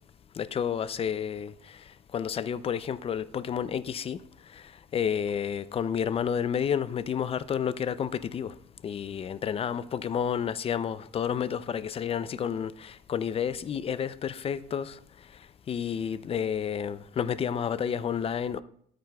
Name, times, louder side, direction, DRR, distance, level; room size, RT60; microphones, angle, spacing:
voice 1, 0.4-1.5 2.1-4.2 4.5-4.6 4.9-8.5 8.8-15.0 15.7-18.6, left 8 dB, 35° left, 0.4 m, -30 dB
13.0 x 8.8 x 2.3 m
cardioid pair, 110°, 17 cm